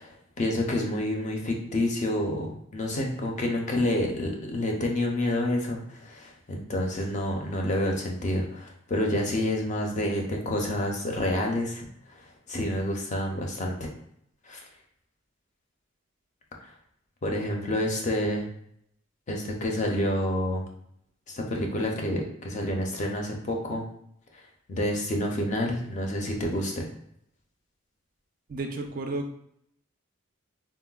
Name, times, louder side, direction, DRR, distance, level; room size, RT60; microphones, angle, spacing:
voice 1, 0.0-11.9 12.1-13.9 14.5-14.6 17.2-18.4 19.3-20.6 21.3-23.8 24.7-26.9, left 1 dB, 35° left, 1 dB, 0.4 m, -28 dB
voice 2, 28.5-29.3, right 2 dB, 40° right, 4 dB, 0.3 m, -32 dB
3.8 x 2.1 x 2.3 m, 0.70 s
head